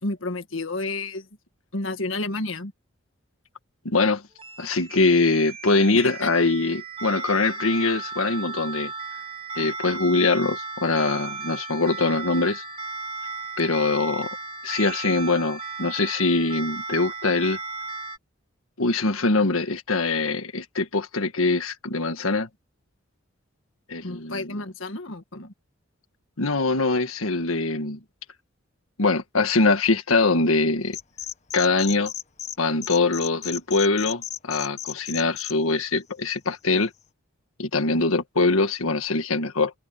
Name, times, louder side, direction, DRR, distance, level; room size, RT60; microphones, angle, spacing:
voice 1, 0.0-1.3 1.7-2.7 5.9-6.3 24.0-25.5, left 2 dB, 70° left, 1.8 m, -31 dB
voice 2, 3.8-4.2 4.6-8.9 9.5-12.6 13.6-14.4 14.6-17.6 18.8-22.5 23.9-24.6 26.4-28.0 29.0-31.0 31.5-32.1 32.6-36.9 37.6-39.7, left 3 dB, 90° left, 1.7 m, -23 dB
sound 1, 4.4-18.2, right 4 dB, 25° right, 2.4 m, -35 dB
sound 2, 30.9-32.6 32.8-35.5, left 10 dB, 35° left, 1.5 m, -34 dB
head